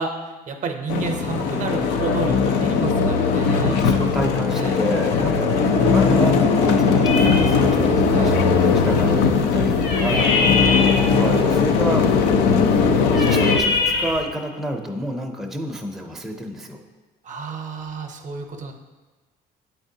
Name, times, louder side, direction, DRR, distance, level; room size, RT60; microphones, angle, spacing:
voice 1, 0.0-3.8 4.6-4.8 8.1-8.8 10.4-11.5 17.2-18.7, right 4 dB, 45° right, 5 dB, 0.6 m, -31 dB
sound 1, 0.9-13.6, left 5 dB, 90° left, 0.5 m, -19 dB
sound 2, 3.3-8.5, left 2 dB, 40° left, 0.7 m, -28 dB
voice 2, 3.5-10.3 11.1-12.1 13.0-16.8, equal, ahead, 1 dB, 0.5 m, -29 dB
sound 3, 7.0-14.2, left 3 dB, 75° left, 1.1 m, -26 dB
8.1 x 4.4 x 2.7 m, 1.3 s
cardioid pair, 110°, 17 cm